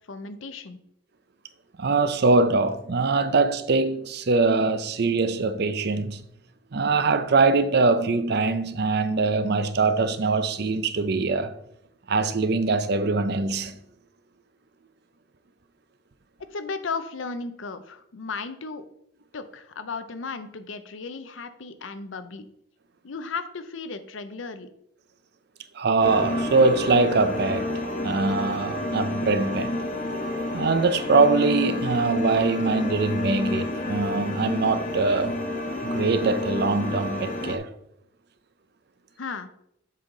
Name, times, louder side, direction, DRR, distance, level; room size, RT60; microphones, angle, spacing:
voice 1, 0.1-0.8 16.5-18.8 19.3-22.5 23.0-24.7 39.2-39.5, left 4 dB, 80° left, 0.7 m, -35 dB
voice 2, 1.8-6.2 6.7-11.5 12.1-13.8 25.7-27.7 28.0-29.7 30.5-35.4 35.8-37.7, right 3 dB, 55° right, 0.6 m, -23 dB
sound 1, 26.0-37.6, left 1 dB, 40° left, 0.8 m, -29 dB
7.5 x 5.5 x 3.8 m
head